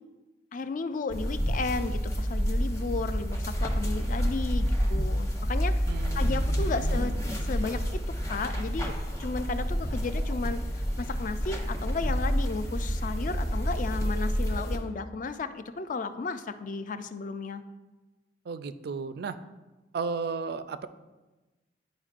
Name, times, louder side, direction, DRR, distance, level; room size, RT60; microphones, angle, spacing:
voice 1, 0.5-5.8 6.2-7.1 7.4-10.6 11.0-17.6, left 4 dB, 45° left, 11 dB, 0.4 m, -34 dB
sound 1, 1.1-14.8, equal, 15° left, 0.9 m, -29 dB
voice 2, 5.9-7.1 18.5-19.4 19.9-20.9, right 4 dB, 60° right, 12 dB, 0.3 m, -35 dB
10.0 x 5.1 x 2.4 m, 1.2 s
head